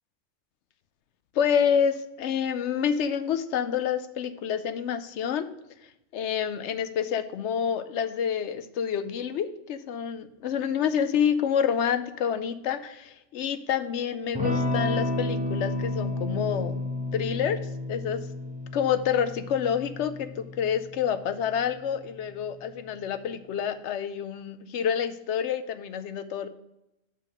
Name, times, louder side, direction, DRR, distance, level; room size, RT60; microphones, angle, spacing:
voice 1, 1.4-5.5 6.1-16.8 17.1-17.6 17.9-18.2 18.7-26.5, left 8 dB, 65° left, 11 dB, 0.8 m, -28 dB
Electric guitar / Strum, 14.3-22.6, left 2 dB, 5° right, 0.9 m, -32 dB
5.8 x 5.2 x 6.4 m, 0.89 s
omnidirectional pair, 1.3 m